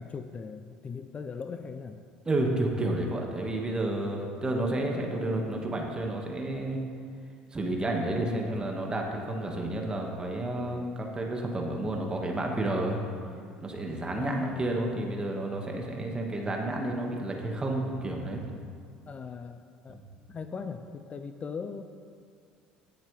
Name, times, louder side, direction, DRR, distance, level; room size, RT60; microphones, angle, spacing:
voice 1, 0.0-2.0 4.6-4.7 8.2-8.6 14.1-15.2 16.1-16.4 19.1-20.0 20.3-21.8, left 5 dB, 35° left, 8 dB, 0.6 m, -39 dB
voice 2, 2.3-6.8 7.5-13.0 13.6-18.4 19.9-20.1, right 1 dB, 25° right, 0 dB, 2.0 m, -31 dB
17.0 x 7.3 x 3.5 m, 2.2 s
hypercardioid pair, 70°, 4 cm